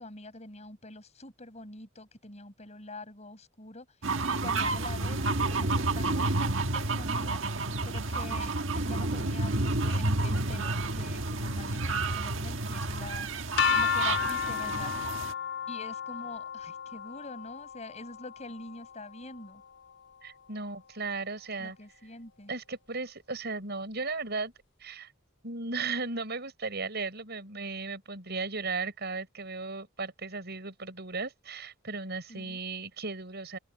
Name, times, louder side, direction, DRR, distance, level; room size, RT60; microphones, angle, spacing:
voice 1, 0.0-3.9 4.3-7.4 7.8-13.3 13.7-15.1 15.7-19.6 21.6-22.5 32.3-32.6, left 2 dB, 35° left, 6.5 m, -45 dB
sound 1, 4.0-15.3, right 2 dB, 75° right, 1.5 m, -30 dB
sound 2, 13.6-19.5, left 7 dB, 60° left, 1.0 m, -33 dB
voice 2, 20.2-21.8 22.5-24.5 24.8-25.1 25.4-33.6, right 3 dB, 55° right, 7.3 m, -36 dB
open air
head